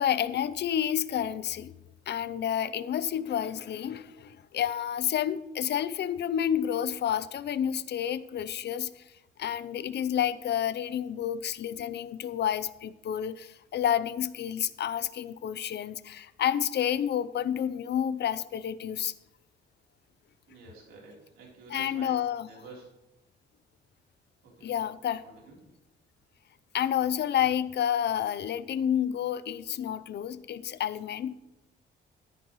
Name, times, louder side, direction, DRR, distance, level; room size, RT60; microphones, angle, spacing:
voice 1, 0.0-1.7 2.1-9.0 9.4-19.1 21.7-22.5 24.6-25.2 26.7-31.3, left 10 dB, 60° left, 16 dB, 0.6 m, -30 dB
voice 2, 20.5-22.9 24.4-24.8 25.2-25.6, right 3 dB, 90° right, -2 dB, 3.7 m, -50 dB
13.5 x 11.0 x 3.1 m, 0.93 s
cardioid pair, 90°, 20 cm